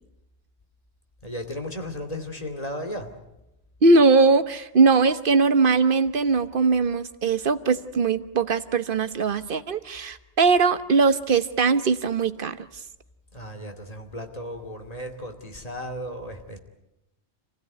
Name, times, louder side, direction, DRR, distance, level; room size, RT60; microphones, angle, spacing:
voice 1, 1.2-3.1 13.3-16.6, equal, 35° left, 4 dB, 2.6 m, -35 dB
voice 2, 3.8-12.6, right 4 dB, 55° right, 11 dB, 1.2 m, -20 dB
27.0 x 16.0 x 9.4 m, 0.92 s
omnidirectional pair, 1.1 m